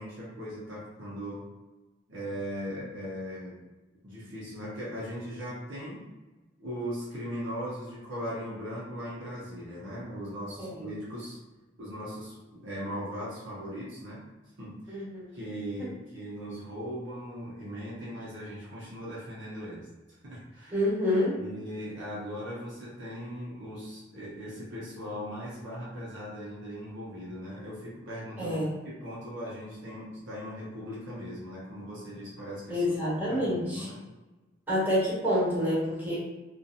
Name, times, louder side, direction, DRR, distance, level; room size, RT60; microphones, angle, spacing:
voice 1, 0.0-1.5 2.1-3.6 4.0-6.1 6.6-11.4 11.8-14.3 14.6-15.1 15.3-20.8 21.3-32.8 33.3-34.0, equal, 65° right, -7 dB, 0.8 m, -39 dB
voice 2, 14.9-15.4 15.8-15.9 20.7-21.4 28.4-28.7 32.7-33.9 34.7-36.2, left 1 dB, 10° right, -10 dB, 1.2 m, -28 dB
2.7 x 2.4 x 2.4 m, 1.2 s
head